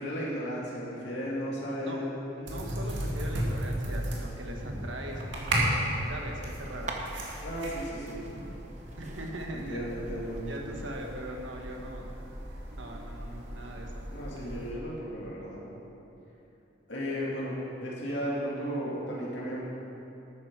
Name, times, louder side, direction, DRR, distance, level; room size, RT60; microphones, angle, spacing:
voice 1, 0.0-2.2 7.4-8.2 9.5-10.4 14.1-15.6 16.9-17.6 17.8-19.6, equal, 70° left, -6 dB, 2.4 m, -34 dB
voice 2, 1.7-2.1 2.3-6.9 9.0-10.1 10.4-12.1 12.8-14.1, right 1 dB, 85° right, 1 dB, 1.5 m, -40 dB
sound 1, 2.5-14.7, right 1 dB, 70° right, 2.1 m, -35 dB
sound 2, 6.6-14.3, right 2 dB, 40° right, 0.9 m, -47 dB
12.0 x 9.1 x 4.8 m, 3.0 s
head